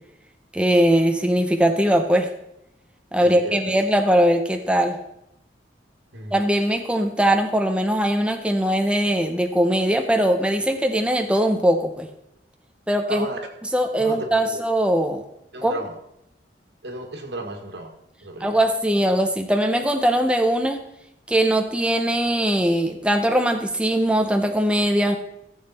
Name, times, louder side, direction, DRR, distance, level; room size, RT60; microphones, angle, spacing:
voice 1, 0.5-2.3 3.1-5.0 6.3-12.1 12.9-13.3 13.7-15.2 15.6-15.7 18.4-20.8 21.3-25.2, right 1 dB, 5° right, 5 dB, 0.7 m, -20 dB
voice 2, 3.2-3.8 6.1-6.4 13.1-13.4 14.0-14.6 15.5-15.9 16.8-17.9 18.2-18.6, right 2 dB, 75° right, 3 dB, 1.9 m, -33 dB
15.0 x 7.3 x 4.2 m, 0.83 s
head